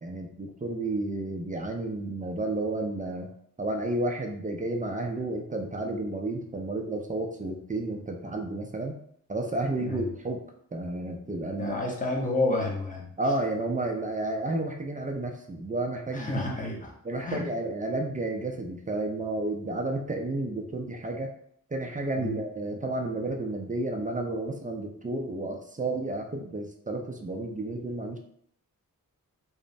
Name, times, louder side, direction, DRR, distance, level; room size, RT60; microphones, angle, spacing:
voice 1, 0.0-3.3 3.6-9.0 9.3-10.4 10.7-11.8 13.2-16.3 17.0-21.3 21.7-28.2, right 2 dB, 25° right, 2 dB, 0.4 m, -31 dB
voice 2, 11.6-13.1 16.1-16.9 17.2-17.4 22.2-22.4, left 2 dB, 20° left, -2 dB, 0.8 m, -30 dB
3.0 x 2.0 x 2.6 m, 0.67 s
cardioid pair, 65°, 36 cm